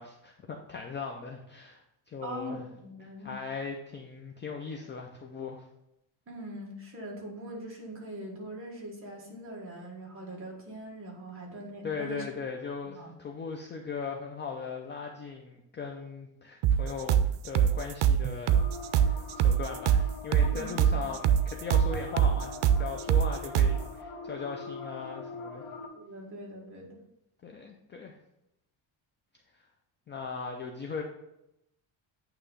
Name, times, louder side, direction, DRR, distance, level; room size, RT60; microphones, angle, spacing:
voice 1, 0.0-2.6 3.0-5.7 11.8-18.6 18.9-25.7 27.4-28.2 30.1-31.0, left 5 dB, 25° left, 1 dB, 0.4 m, -39 dB
voice 2, 2.2-3.3 6.3-12.3 13.0-13.1 20.5-21.0 25.9-27.0, right 1 dB, 25° right, -2 dB, 1.6 m, -42 dB
sound 1, 16.6-23.8, right 9 dB, 90° right, 0.6 m, -24 dB
sound 2, 18.5-25.9, left 3 dB, 75° left, 1.1 m, -43 dB
8.9 x 3.0 x 5.4 m, 0.84 s
cardioid pair, 180°, 48 cm